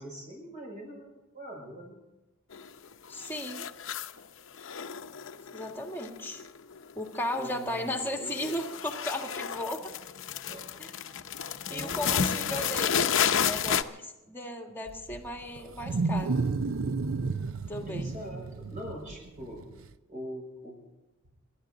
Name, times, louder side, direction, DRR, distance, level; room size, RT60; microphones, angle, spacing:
voice 1, 0.0-1.9 7.3-8.6 10.4-10.7 11.7-12.8 17.9-19.6 20.1-20.8, equal, 40° right, 0 dB, 6.3 m, -42 dB
sound 1, 2.5-2.9 3.2-4.2 4.6-6.8 7.1-7.5 7.8-13.8, left 8 dB, 65° left, 0.7 m, -31 dB
voice 2, 3.1-3.7 5.5-6.4 7.0-9.9 10.8-10.9 11.7-16.4 17.7-18.1, left 1 dB, 10° left, 2 dB, 1.8 m, -36 dB
Wild animals, 14.9-19.9, right 4 dB, 75° right, 0.6 m, -32 dB
28.0 x 13.0 x 3.9 m, 1.0 s
head